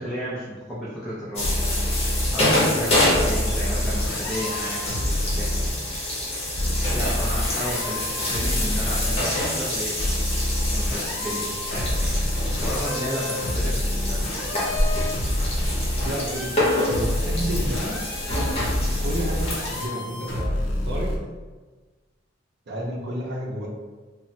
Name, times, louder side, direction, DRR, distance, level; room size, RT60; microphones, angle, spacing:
voice 1, 0.0-1.8 2.3-5.7 6.9-10.0 10.6-14.8, equal, ahead, -11 dB, 0.5 m, -33 dB
sound 1, 1.4-2.3 3.1-5.7 6.6-9.2 10.0-21.2, left 1 dB, 90° left, 0.5 m, -27 dB
sound 2, 1.4-19.9, left 1 dB, 35° left, 0.8 m, -27 dB
voice 2, 16.0-16.5 16.8-18.0 19.0-21.1 22.7-23.7, equal, 60° right, -2 dB, 0.6 m, -31 dB
3.1 x 2.0 x 2.7 m, 1.3 s
head